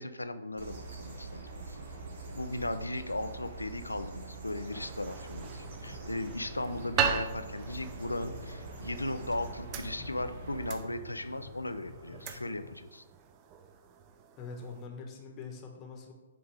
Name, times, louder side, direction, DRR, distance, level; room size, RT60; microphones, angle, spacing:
voice 1, 0.0-1.8 2.3-13.0, left 1 dB, 80° left, 10 dB, 0.5 m, -37 dB
sound 1, 0.6-10.8, right 3 dB, 50° right, 1.5 m, -44 dB
sound 2, 4.7-14.9, right 7 dB, 25° right, 0.5 m, -39 dB
sound 3, 5.1-12.8, left 4 dB, 65° left, 1.2 m, -50 dB
voice 2, 14.4-16.1, left 4 dB, 25° left, 2 dB, 1.2 m, -43 dB
7.5 x 3.5 x 4.8 m, 1.1 s
figure-of-eight pair, 125°, 0 cm